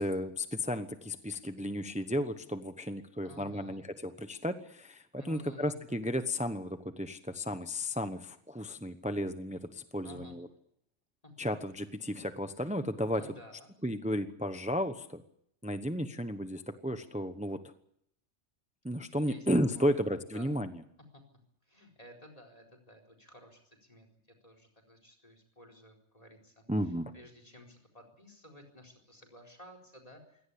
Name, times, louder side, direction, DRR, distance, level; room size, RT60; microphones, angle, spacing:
voice 1, 0.0-10.5 11.4-13.2 13.8-15.2 15.6-17.7 18.8-20.7 26.7-27.1, equal, 5° right, 9 dB, 1.0 m, -33 dB
voice 2, 3.2-3.9 5.2-5.8 10.0-10.4 11.2-11.3 13.1-13.7 19.2-19.5 19.8-20.0 20.3-20.5 21.1-21.2 21.6-24.1 24.4-26.6 27.1-30.5, left 1 dB, 30° left, 6 dB, 4.5 m, -54 dB
23.5 x 17.5 x 8.5 m, 0.73 s
omnidirectional pair, 1.2 m